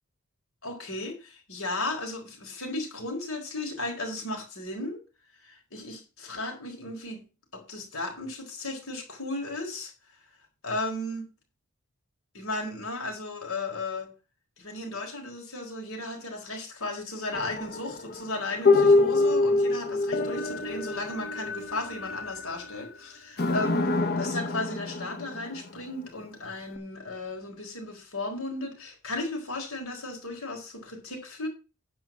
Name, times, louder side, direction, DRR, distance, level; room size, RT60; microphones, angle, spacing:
voice 1, 0.6-5.0 5.4-7.3 7.5-9.9 10.6-11.3 12.3-14.1 14.6-23.8 24.2-31.5, left 2 dB, 75° left, 4.4 m, -35 dB
sound 1, 17.3-22.8 23.4-25.8 26.8-26.9, left 3 dB, 50° left, 1.1 m, -26 dB
10.5 x 4.9 x 7.4 m
head